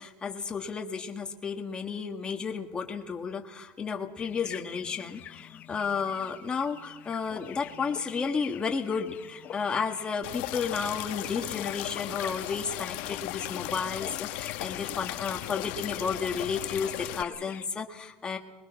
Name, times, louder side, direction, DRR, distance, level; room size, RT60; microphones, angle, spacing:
voice 1, 0.0-18.4, left 5 dB, 15° left, 3 dB, 1.7 m, -32 dB
sound 1, 4.2-17.7, left 10 dB, 30° left, 0.7 m, -46 dB
sound 2, 10.2-17.2, left 16 dB, 80° left, 0.9 m, -36 dB
24.5 x 22.0 x 5.8 m, 1.1 s
cardioid pair, 165°, 5 cm